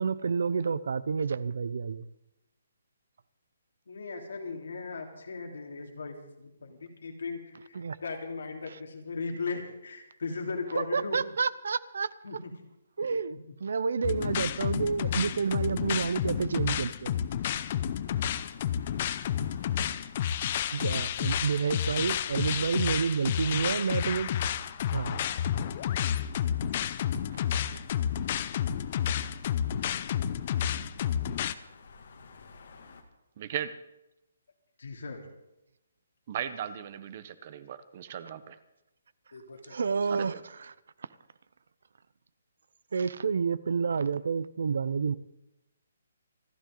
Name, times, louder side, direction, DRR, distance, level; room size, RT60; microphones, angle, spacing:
voice 1, 0.0-2.1 7.7-8.0 8.7-8.8 10.8-12.1 13.0-17.1 20.7-24.3 24.9-25.2 39.7-40.3 40.6-40.7 42.9-45.2, right 5 dB, 70° right, 0.7 m, -29 dB
voice 2, 3.9-11.2 12.2-12.5 13.3-13.4 34.8-35.2 39.3-39.8 40.1-40.2, left 4 dB, 80° left, 3.1 m, -38 dB
sound 1, 14.0-31.5, left 9 dB, 35° left, 0.6 m, -30 dB
sound 2, 17.9-33.0, left 4 dB, 65° left, 2.2 m, -53 dB
voice 3, 33.4-33.7 36.3-38.6 40.1-40.4, right 9 dB, 35° right, 0.9 m, -37 dB
27.0 x 10.5 x 3.9 m
hypercardioid pair, 165°, 0 cm